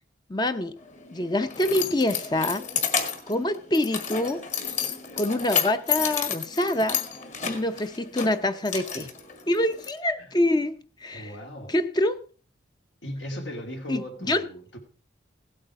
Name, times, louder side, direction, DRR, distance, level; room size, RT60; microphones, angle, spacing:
voice 1, 0.3-0.8 1.1-2.6 3.3-4.4 5.2-7.0 7.5-9.1 9.5-11.3 11.7-12.2 13.9-14.5, left 1 dB, 20° left, 0.7 m, -26 dB
Keys jangling, 0.8-9.9, left 7 dB, 40° left, 1.8 m, -31 dB
voice 2, 11.1-11.7 13.0-14.8, equal, 80° left, 2.9 m, -37 dB
16.5 x 8.5 x 4.8 m
head